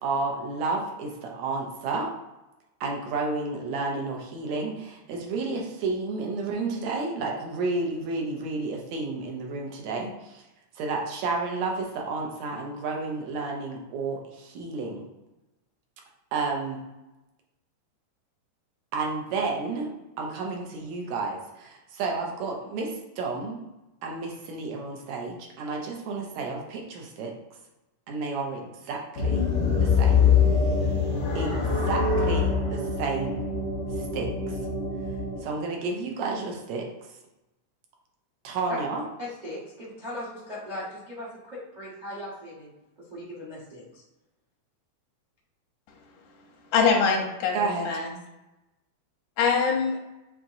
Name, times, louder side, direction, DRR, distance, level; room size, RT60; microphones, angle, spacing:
voice 1, 0.0-2.1 2.8-10.4 10.8-15.0 16.3-16.8 18.9-23.6 24.0-27.3 28.1-29.5 29.8-30.2 31.4-33.4 34.0-34.6 35.4-36.9 38.4-39.1 47.5-47.9, right 3 dB, 75° right, 0 dB, 1.9 m, -31 dB
sound 1, 29.2-35.4, left 5 dB, 55° left, 1.0 m, -24 dB
voice 2, 39.2-42.7 43.1-43.8, left 1 dB, 45° right, -6 dB, 0.5 m, -38 dB
voice 3, 46.7-48.1 49.4-50.0, left 5 dB, 85° left, 0 dB, 2.3 m, -23 dB
7.2 x 2.9 x 2.6 m, 1.0 s
omnidirectional pair, 3.4 m